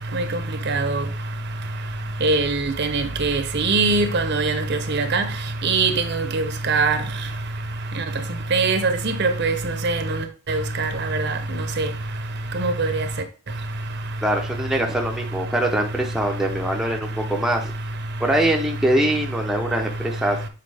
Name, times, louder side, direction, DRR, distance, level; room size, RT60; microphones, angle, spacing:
voice 1, 0.7-1.0 2.2-4.6 4.9-5.2 5.6-7.0 8.5-9.5 9.8-10.0 10.5-10.9 11.8-11.9 12.6-13.0, right 3 dB, 50° right, 0.8 m, -21 dB
voice 2, 14.2-17.7 18.2-20.4, right 1 dB, ahead, 0.6 m, -23 dB
7.7 x 4.2 x 3.4 m
head